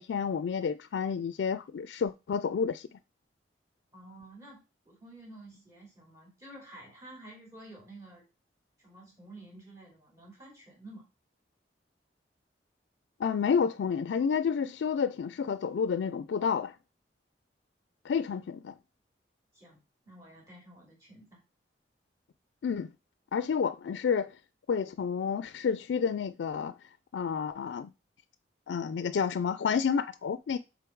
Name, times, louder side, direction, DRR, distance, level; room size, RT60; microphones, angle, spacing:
voice 1, 0.0-2.9 13.2-16.7 18.0-18.7 22.6-22.9 23.3-24.4 24.7-26.7 27.1-27.9 28.7-30.6, left 6 dB, 85° left, 0.3 m, -30 dB
voice 2, 3.9-8.2 8.8-11.0 19.5-19.8 20.0-21.4, right 1 dB, 15° right, 3.2 m, -51 dB
6.9 x 3.8 x 4.5 m
head